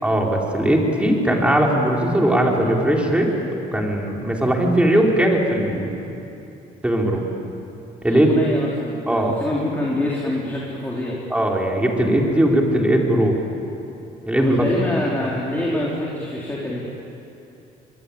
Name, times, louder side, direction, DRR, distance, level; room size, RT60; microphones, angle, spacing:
voice 1, 0.0-3.3 3.7-5.9 6.8-7.2 8.0-8.3 9.1-9.3 11.3-13.4 14.2-14.6, right 1 dB, 5° right, -1 dB, 4.7 m, -19 dB
voice 2, 8.1-11.1 14.4-16.8, left 1 dB, 10° left, -5 dB, 4.4 m, -25 dB
26.0 x 22.0 x 8.9 m, 2.8 s
cardioid pair, 110°, 17 cm